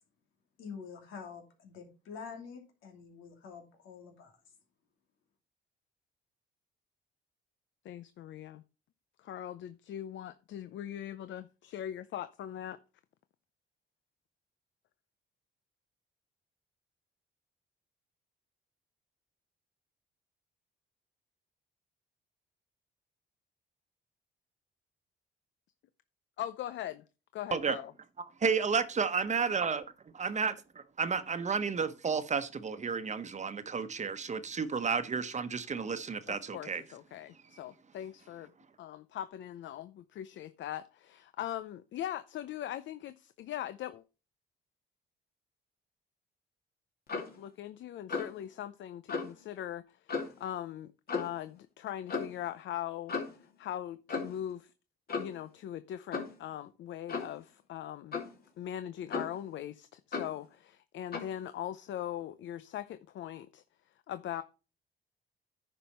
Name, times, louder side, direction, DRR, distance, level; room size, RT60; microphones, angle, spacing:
voice 1, 0.6-4.4, left 6 dB, 90° left, 2.6 m, -47 dB
voice 2, 7.8-8.6 9.2-12.8 26.4-27.0 27.3-27.9 36.3-38.5 38.8-44.0 47.4-54.7 55.2-58.2 58.6-63.6 64.1-64.4, left 11 dB, 70° left, 0.6 m, -41 dB
voice 3, 28.4-29.8 30.1-36.8, right 5 dB, 35° right, 1.0 m, -32 dB
Clock, 47.1-47.4 48.1-48.4 49.1-49.3 50.1-50.4 51.1-51.4 52.1-52.3 53.1-53.4 54.1-54.4 55.1-55.4 56.1-56.4 57.1-57.4 58.1-58.4 59.1-59.5 60.1-60.4 61.1-61.4, left 4 dB, 50° left, 2.7 m, -36 dB
10.0 x 5.5 x 4.2 m
cardioid pair, 90°, 20 cm